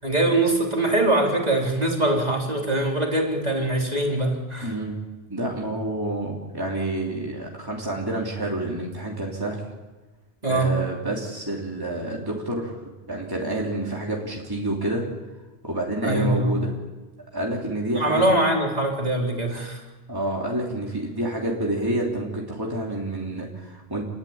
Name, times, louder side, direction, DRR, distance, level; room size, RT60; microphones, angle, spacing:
voice 1, 0.0-4.8 10.4-10.8 16.0-16.5 17.9-19.8, right 1 dB, 35° right, 0 dB, 4.1 m, -23 dB
voice 2, 4.6-5.0 5.3-9.6 10.5-12.7 13.1-15.0 15.6-16.7 17.3-18.2 20.1-24.0, right 1 dB, 20° right, -2 dB, 3.5 m, -28 dB
29.0 x 22.0 x 8.9 m, 1.2 s
omnidirectional pair, 1.2 m